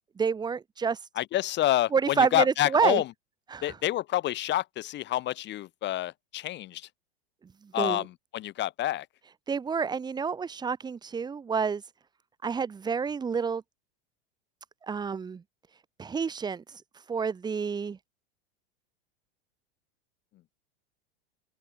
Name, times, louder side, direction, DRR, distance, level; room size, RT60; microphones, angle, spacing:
voice 1, 0.2-1.1 1.9-3.0 3.5-3.8 7.8-8.0 9.5-11.9 12.4-13.6 14.9-15.4 16.0-18.0, right 5 dB, 15° right, 0.7 m, -28 dB
voice 2, 1.2-3.1 3.6-6.9 7.7-9.1, left 14 dB, 35° left, 1.0 m, -28 dB
hypercardioid pair, 100°, 31 cm